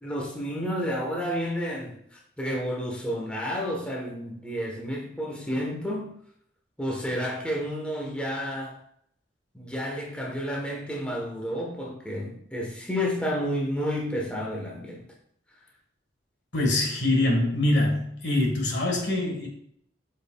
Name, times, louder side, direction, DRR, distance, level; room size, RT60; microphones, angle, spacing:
voice 1, 0.0-6.1 6.8-8.8 9.5-15.0, equal, 5° left, -2 dB, 1.1 m, -31 dB
voice 2, 16.5-19.5, left 1 dB, 65° left, 1 dB, 1.7 m, -24 dB
8.7 x 5.4 x 2.3 m, 0.69 s
head